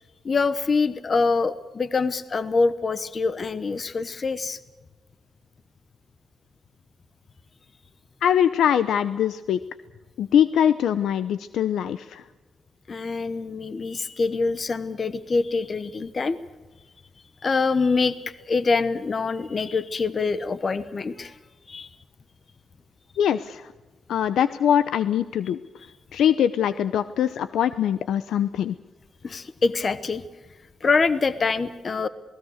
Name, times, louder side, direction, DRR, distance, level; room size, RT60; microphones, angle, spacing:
voice 1, 0.2-4.6 12.9-16.4 17.4-21.4 21.7-21.9 29.2-30.2 30.8-32.1, left 4 dB, 35° left, 14 dB, 0.9 m, -25 dB
voice 2, 8.2-9.6 10.2-12.2 23.2-23.7 24.1-25.6 26.1-28.7, left 9 dB, 90° left, 13 dB, 0.7 m, -22 dB
28.0 x 19.0 x 6.5 m, 1.2 s
wide cardioid pair, 145°, 0 cm